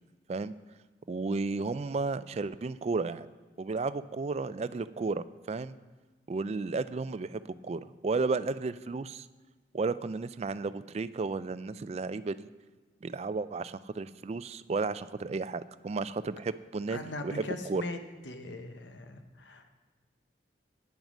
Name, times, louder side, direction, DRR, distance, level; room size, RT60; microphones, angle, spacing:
voice 1, 1.1-3.3 3.6-5.8 6.3-9.3 9.7-12.5 13.0-17.0 17.2-17.8, right 3 dB, 35° right, 15 dB, 0.3 m, -33 dB
voice 2, 16.9-18.0 18.2-19.7, left 2 dB, 80° left, 7 dB, 0.9 m, -40 dB
9.4 x 9.0 x 6.1 m, 1.3 s
head